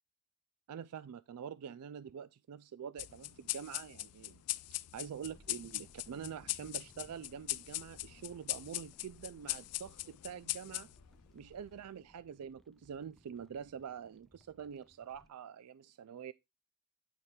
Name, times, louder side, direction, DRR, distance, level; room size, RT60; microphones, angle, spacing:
voice 1, 0.7-4.4 4.7-10.9 11.3-16.3, right 8 dB, 85° right, 0.4 m, -46 dB
sound 1, 3.0-11.9, left 19 dB, 90° left, 0.4 m, -41 dB
sound 2, 5.2-15.3, equal, ahead, 0.3 m, -64 dB
9.4 x 3.2 x 5.8 m
head